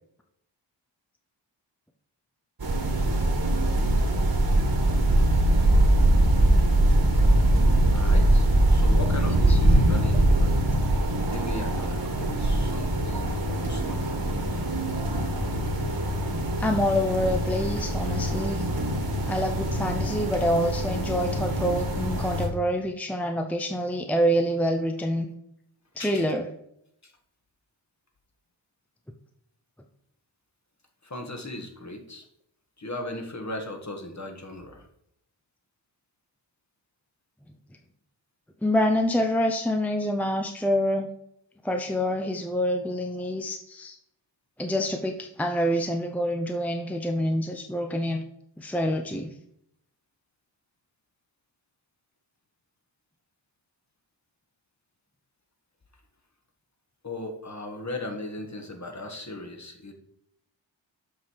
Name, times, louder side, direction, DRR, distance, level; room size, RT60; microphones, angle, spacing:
sound 1, 2.6-22.5, right 1 dB, 50° right, 1.9 m, -23 dB
voice 1, 7.9-10.6 11.2-14.0 26.0-26.4 27.0-27.1 31.0-32.3 32.8-34.9 57.0-59.9, left 1 dB, 35° left, 3 dB, 1.7 m, -37 dB
voice 2, 16.6-18.6 19.3-25.3 26.0-26.5 38.6-41.1 41.6-44.0 44.6-48.2 48.6-49.3, equal, 5° left, 4 dB, 0.7 m, -26 dB
7.3 x 5.5 x 4.7 m, 0.75 s
cardioid pair, 45°, 46 cm